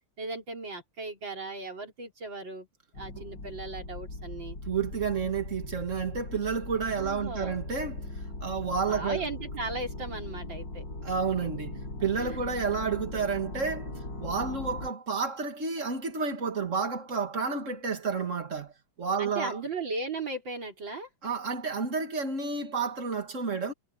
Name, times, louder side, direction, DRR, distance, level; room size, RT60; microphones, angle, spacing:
voice 1, 0.2-2.7 2.9-4.6 7.0-7.6 8.9-10.8 12.2-12.4 19.2-21.1, right 3 dB, 65° right, 4.9 m, -37 dB
sound 1, 2.9-14.9, left 2 dB, 60° left, 7.1 m, -39 dB
voice 2, 4.7-8.1 8.4-9.3 11.0-13.9 14.2-18.7 19.0-19.6 21.2-23.7, right 5 dB, 40° right, 2.4 m, -30 dB
omnidirectional pair, 2.2 m